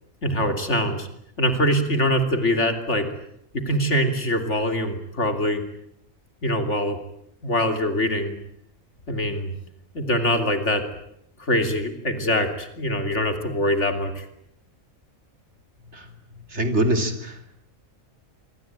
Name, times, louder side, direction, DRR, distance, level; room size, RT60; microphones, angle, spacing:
voice 1, 0.2-1.1 1.4-3.1 3.5-5.6 6.4-7.0 7.4-8.4 9.1-9.5 9.9-10.8 11.4-14.3, left 1 dB, 55° left, 7 dB, 3.3 m, -23 dB
voice 2, 16.5-17.6, right 1 dB, 50° right, 7 dB, 3.4 m, -24 dB
25.5 x 25.0 x 9.0 m, 0.74 s
omnidirectional pair, 1.5 m